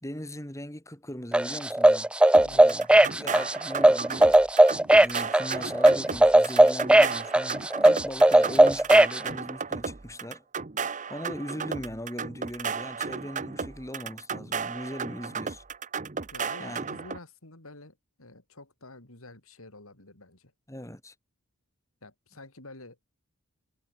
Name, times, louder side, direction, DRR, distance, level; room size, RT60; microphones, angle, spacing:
voice 1, 0.0-2.1 2.5-4.4 5.0-10.4 11.1-15.6 16.6-16.9 20.7-21.1, equal, 15° left, 4.2 m, -39 dB
sound 1, 1.3-9.2, right 1 dB, 5° right, 0.3 m, -18 dB
sound 2, 2.3-17.2, right 5 dB, 35° right, 0.9 m, -34 dB
voice 2, 2.4-2.8 16.3-20.5 22.0-23.0, left 2 dB, 70° left, 4.4 m, -49 dB
head